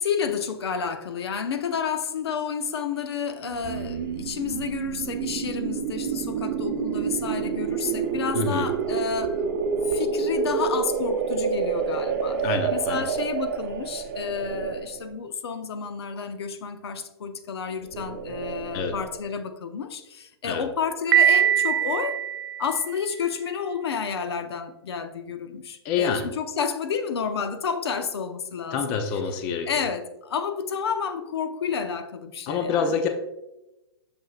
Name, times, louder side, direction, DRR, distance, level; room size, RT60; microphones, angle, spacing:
voice 1, 0.0-9.5 9.8-12.4 12.7-22.3 22.6-28.8 29.7-32.9, left 6 dB, 75° left, 0.8 m, -30 dB
sound 1, 3.4-15.1 17.8-19.2, right 6 dB, 40° right, 0.8 m, -28 dB
voice 2, 8.3-8.7 12.4-13.1 18.7-18.9 20.4-20.7 25.8-26.3 28.7-29.7 32.5-33.1, left 6 dB, 30° left, 0.6 m, -27 dB
Piano, 21.1-23.1, right 10 dB, 60° right, 0.4 m, -22 dB
6.5 x 6.2 x 2.4 m
hypercardioid pair, 155°, 13 cm